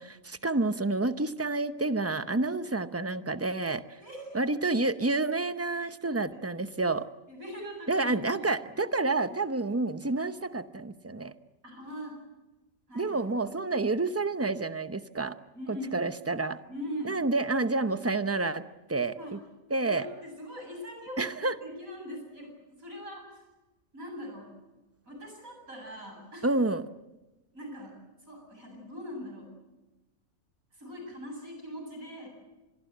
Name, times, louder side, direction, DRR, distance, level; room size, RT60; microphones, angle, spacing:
voice 1, 0.0-4.0 4.3-7.1 7.9-11.3 12.9-15.4 15.7-16.6 17.0-18.6 18.9-19.4 19.7-20.1 21.2-21.6 26.4-26.9, right 3 dB, 15° right, 11 dB, 0.6 m, -29 dB
voice 2, 4.0-4.4 6.0-6.4 7.3-8.5 11.6-12.2 12.9-13.3 15.5-16.0 16.7-17.2 19.2-19.3 19.8-21.2 21.6-22.5 22.8-23.4 23.9-24.6 25.0-26.5 27.5-28.0 28.3-29.5 30.7-32.3, equal, 75° right, 3 dB, 8.6 m, -41 dB
26.0 x 22.0 x 7.9 m, 1.1 s
omnidirectional pair, 1.4 m